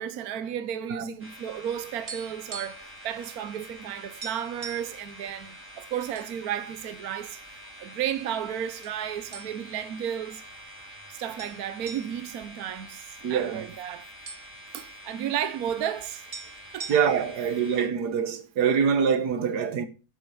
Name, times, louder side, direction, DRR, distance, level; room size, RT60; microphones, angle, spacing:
voice 1, 0.0-7.4 7.8-10.4 11.1-14.1 14.7-16.3 16.7-17.0, right 9 dB, 70° right, 1.3 m, -33 dB
sound 1, 1.2-17.9, equal, 5° right, 2.9 m, -46 dB
sound 2, 1.9-3.0 3.2-3.4 3.8-3.9 4.2-5.0 5.6-6.3 6.7-6.8 7.5-8.1 8.8-9.0 9.3-9.9 10.2-10.3 11.4-13.4 13.7-13.8 14.0-15.0 16.0-16.1 16.3-17.4, right 5 dB, 50° right, 2.0 m, -42 dB
voice 2, 13.2-13.7 16.9-19.9, right 7 dB, 85° right, 1.7 m, -25 dB
11.5 x 7.7 x 5.5 m
omnidirectional pair, 1.7 m